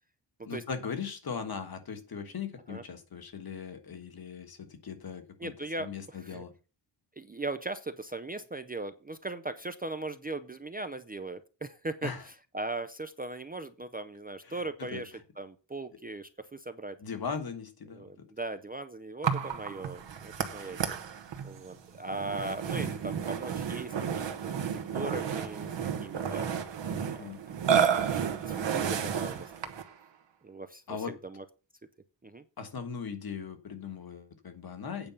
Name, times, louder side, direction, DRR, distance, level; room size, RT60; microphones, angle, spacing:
voice 1, 0.4-5.5 5.8-6.5 12.0-12.2 14.4-14.6 14.9-15.0 17.0-18.2 27.0-27.4 30.9-31.1 32.6-35.1, left 6 dB, 55° left, 7 dB, 1.6 m, -39 dB
voice 2, 5.4-6.4 7.2-12.1 12.5-17.0 17.9-21.0 21.4-25.8 26.0-26.5 27.1-27.3 27.8-28.2 28.5-29.7 30.4-31.4 32.2-32.4, right 2 dB, 20° right, 10 dB, 0.5 m, -39 dB
Burping eructation, 19.2-29.9, right 7 dB, 70° right, 1.3 m, -31 dB
8.9 x 5.2 x 7.0 m, 0.34 s
wide cardioid pair, 180°, 44 cm